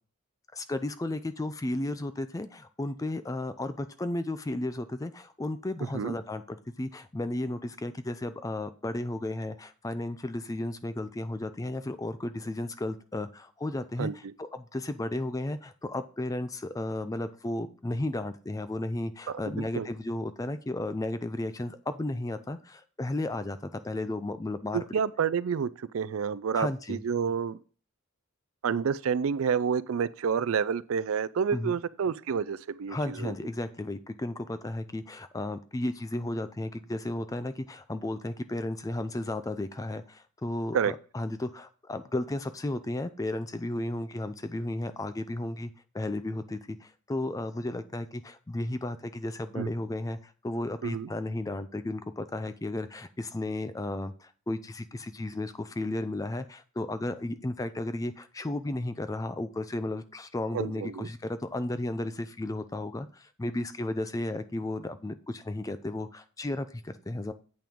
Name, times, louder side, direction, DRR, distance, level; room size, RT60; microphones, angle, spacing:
voice 1, 0.5-24.8 26.5-27.0 31.5-31.8 32.9-67.3, left 1 dB, 15° left, 0.4 m, -34 dB
voice 2, 24.7-27.6 28.6-33.3 40.7-40.9 49.6-49.7 50.8-51.1 60.5-61.1, right 6 dB, 70° right, 0.4 m, -29 dB
8.5 x 5.9 x 3.6 m
head